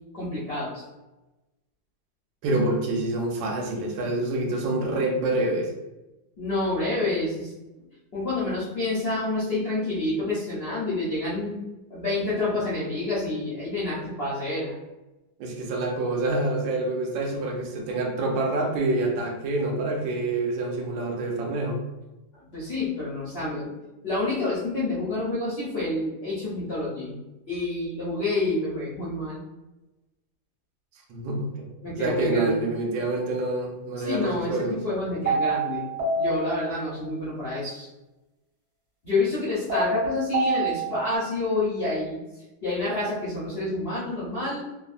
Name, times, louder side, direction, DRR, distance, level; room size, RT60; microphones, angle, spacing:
voice 1, 0.1-0.8 6.4-7.8 8.1-11.5 11.9-14.8 22.3-23.7 24.0-27.2 27.5-29.4 31.8-32.6 34.0-35.9 36.1-37.9 39.0-42.2 42.6-44.7, left 2 dB, 70° left, -9 dB, 0.5 m, -28 dB
voice 2, 2.4-5.7 15.4-21.8 31.1-34.8, right 2 dB, 75° right, 0 dB, 1.4 m, -27 dB
sound 1, 35.3-37.1 39.7-41.2, right 3 dB, 15° right, 0.6 m, -27 dB
3.4 x 2.1 x 2.4 m, 1.0 s
omnidirectional pair, 2.2 m